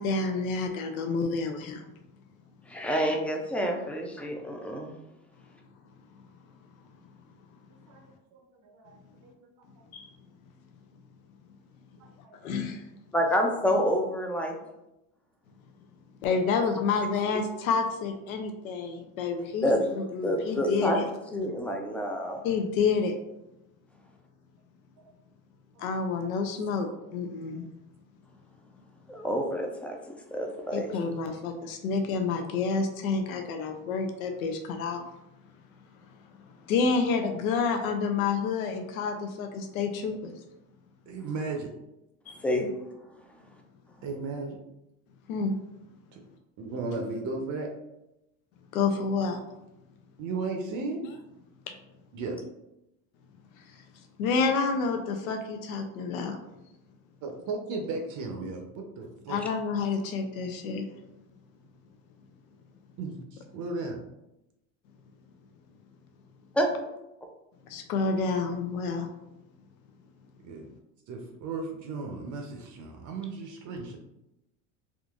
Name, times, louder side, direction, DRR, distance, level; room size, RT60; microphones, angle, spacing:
voice 1, 0.0-1.8 9.9-10.1 12.4-12.8 16.2-21.0 22.4-23.1 25.8-27.7 30.7-35.1 36.7-40.3 42.3-42.4 45.3-45.5 48.7-49.4 53.7-53.8 54.2-56.4 59.3-60.9 67.7-69.1, left 4 dB, 90° left, 5 dB, 0.5 m, -29 dB
voice 2, 2.7-5.0 13.1-14.5 19.6-19.8 20.2-21.0 21.3-22.4 29.1-30.0 30.3-30.9 42.4-42.7 66.5-66.7, equal, 5° left, 2 dB, 0.3 m, -28 dB
voice 3, 8.3-9.0 9.2-9.5 9.8-9.9 12.0-12.4 14.5-14.6 25.0-25.1 25.8-26.3 27.5-27.6 41.1-41.7 44.0-44.6 46.1-46.2 46.6-47.7 50.2-51.0 52.1-52.4 55.2-55.3 55.9-56.0 57.2-59.4 63.0-64.0 70.4-70.7 71.1-74.0, right 3 dB, 45° right, 3 dB, 0.6 m, -36 dB
3.7 x 2.5 x 2.3 m, 0.91 s
supercardioid pair, 90°, 41 cm